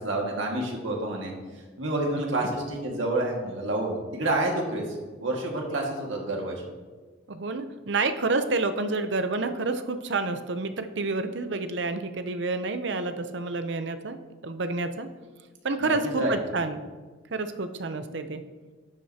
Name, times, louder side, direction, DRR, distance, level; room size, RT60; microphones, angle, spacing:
voice 1, 0.0-4.8 5.2-6.5 15.8-16.4, right 2 dB, 80° right, 0 dB, 1.9 m, -29 dB
voice 2, 7.3-14.2 14.4-15.1 15.6-16.8 17.3-18.4, right 3 dB, 65° right, 9 dB, 0.7 m, -29 dB
11.5 x 7.6 x 2.8 m, 1.3 s
head